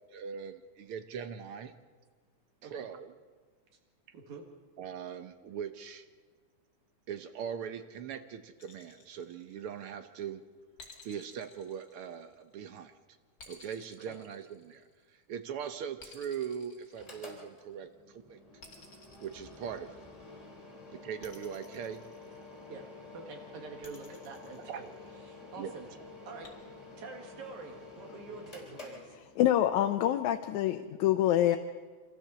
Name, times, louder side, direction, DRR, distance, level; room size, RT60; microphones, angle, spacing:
voice 1, 0.1-1.7 2.6-3.1 4.8-6.0 7.1-10.4 11.0-12.9 13.5-18.4 19.2-20.0 20.9-22.0 24.7-24.8 25.6-25.7, right 8 dB, 65° right, 8 dB, 1.5 m, -41 dB
voice 2, 4.1-4.4 14.0-14.1 22.7-24.9 25.2-25.9 26.3-26.5 27.0-29.2, right 4 dB, 80° right, 1 dB, 3.4 m, -46 dB
sound 1, 8.6-10.0 10.8-12.6 13.4-15.1 16.0-17.7 18.6-20.2 21.2-22.8 23.8-25.3 26.4-26.5, left 4 dB, 40° left, 3.0 m, -55 dB
Mechanical fan, 16.9-29.7, left 3 dB, 25° left, 4.4 m, -50 dB
voice 3, 29.4-31.6, left 12 dB, 80° left, 6 dB, 2.1 m, -26 dB
25.5 x 15.0 x 6.9 m, 1.5 s
omnidirectional pair, 3.3 m